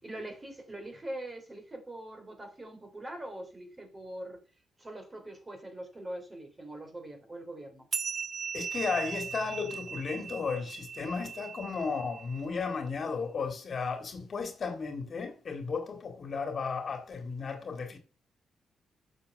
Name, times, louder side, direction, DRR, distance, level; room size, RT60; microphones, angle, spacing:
voice 1, 0.0-4.4 4.8-7.9, right 1 dB, 25° right, 3.4 m, -42 dB
sound 1, 7.9-12.8, right 6 dB, 45° right, 0.5 m, -38 dB
voice 2, 8.5-18.0, left 5 dB, 45° left, 2.1 m, -34 dB
9.0 x 6.8 x 6.5 m
cardioid pair, 85°, 0 cm